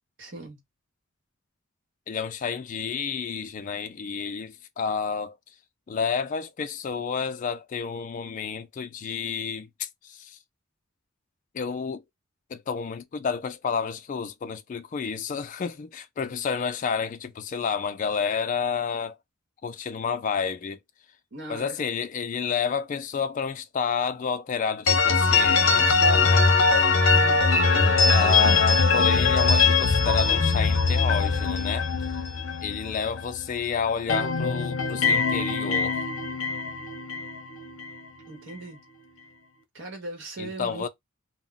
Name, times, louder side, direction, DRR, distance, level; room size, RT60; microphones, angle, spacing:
voice 1, 0.2-0.6 21.3-21.8 27.1-27.4 38.3-38.8 39.7-40.9, right 2 dB, 65° right, 1.0 m, -39 dB
voice 2, 2.1-5.4 5.9-10.4 11.5-12.0 12.5-19.2 19.6-20.8 21.5-26.5 28.1-31.9 32.6-36.0 40.4-40.9, left 6 dB, 40° left, 0.3 m, -30 dB
sound 1, 24.9-33.6 33.9-38.0, left 4 dB, 75° left, 0.6 m, -22 dB
2.3 x 2.1 x 3.7 m
head